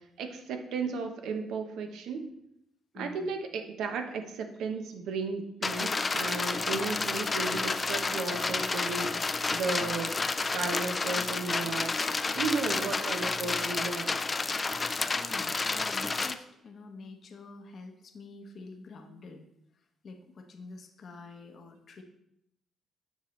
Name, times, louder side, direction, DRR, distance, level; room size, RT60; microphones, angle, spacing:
voice 1, 0.2-2.3 2.9-9.1 9.5-10.2 10.5-11.9 12.4-14.2, right 4 dB, 80° right, 6 dB, 0.7 m, -34 dB
voice 2, 2.9-3.3 15.1-19.4 20.0-22.0, left 3 dB, 55° left, 4 dB, 0.8 m, -47 dB
sound 1, 5.6-16.3, left 3 dB, 30° left, 0.4 m, -30 dB
7.1 x 5.6 x 3.1 m, 0.77 s
cardioid pair, 90°, 0 cm